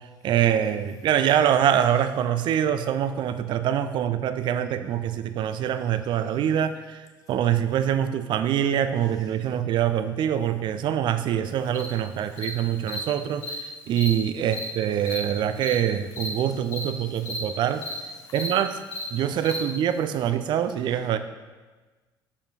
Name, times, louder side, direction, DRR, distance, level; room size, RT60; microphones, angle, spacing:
voice 1, 0.2-7.0 7.3-13.6 13.9-17.8 18.3-18.8 19.1-21.2, right 10 dB, 40° right, 11 dB, 0.4 m, -24 dB
Cricket, 11.7-11.9 12.4-12.5 12.9-13.0 13.4-13.5 13.9-14.1 14.5-14.6 15.0-15.2 15.6-15.7 16.1-16.3 16.7-16.8 17.2-17.4 17.8-17.9 18.3-18.5 18.9-19.0 19.4-19.6, left 2 dB, 50° left, 1.8 m, -33 dB
voice 2, 17.0-17.5 18.2-18.3 19.1-19.4, left 4 dB, 30° left, 0 dB, 1.1 m, -55 dB
6.6 x 5.6 x 2.7 m, 1.3 s
figure-of-eight pair, 55°, 12 cm